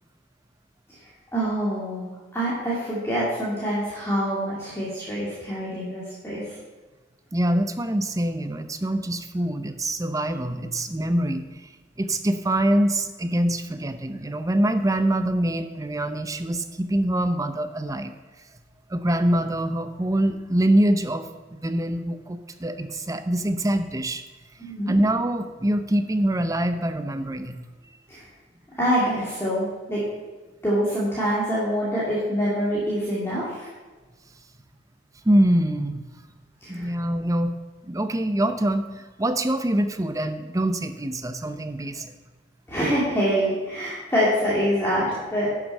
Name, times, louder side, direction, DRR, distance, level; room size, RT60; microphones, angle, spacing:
voice 1, 1.3-6.4 24.6-25.0 28.1-28.2 28.8-30.0 30.6-33.7 36.6-36.9 42.7-45.5, equal, 15° left, -8 dB, 2.3 m, -25 dB
voice 2, 7.3-11.4 12.0-18.1 18.9-24.2 24.9-27.5 35.2-36.0 36.7-37.6 37.8-38.8 39.2-42.1, right 1 dB, 20° right, 9 dB, 0.6 m, -24 dB
11.0 x 6.2 x 5.4 m, 1.3 s
head